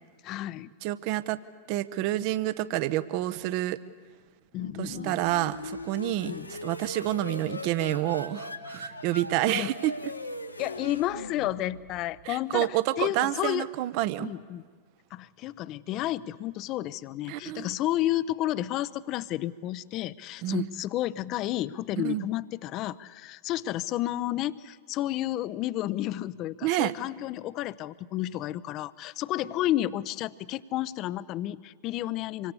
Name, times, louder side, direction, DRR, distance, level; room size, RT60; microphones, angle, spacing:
voice 1, 0.2-0.7 4.5-5.2 6.3-6.5 9.5-9.7 10.6-13.7 14.2-14.6 15.1-32.5, left 14 dB, 40° left, 19 dB, 0.6 m, -31 dB
voice 2, 0.8-1.4 1.7-3.8 4.8-9.9 12.2-14.3 17.3-17.7 20.4-20.7 22.0-22.3 26.6-26.9, right 15 dB, 45° right, 16 dB, 0.9 m, -28 dB
sound 1, 4.5-12.2, left 1 dB, 85° left, 1.2 m, -39 dB
26.0 x 24.0 x 6.9 m, 1.5 s
figure-of-eight pair, 90°, 0 cm